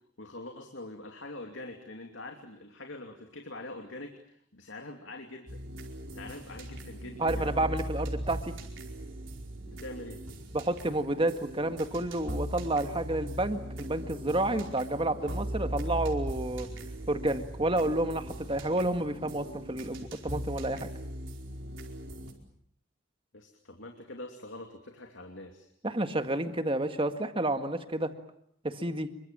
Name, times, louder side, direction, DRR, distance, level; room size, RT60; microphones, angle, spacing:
voice 1, 0.2-5.6 6.1-7.5 9.7-10.2 23.3-25.7, left 2 dB, 70° left, 4 dB, 2.8 m, -44 dB
sound 1, 5.5-22.3, right 1 dB, 70° right, 4.9 m, -39 dB
voice 2, 7.2-8.5 10.5-16.7 17.1-20.9 25.8-28.1 28.6-29.1, right 1 dB, 25° right, 7 dB, 1.9 m, -30 dB
28.0 x 24.0 x 7.6 m, 0.70 s
head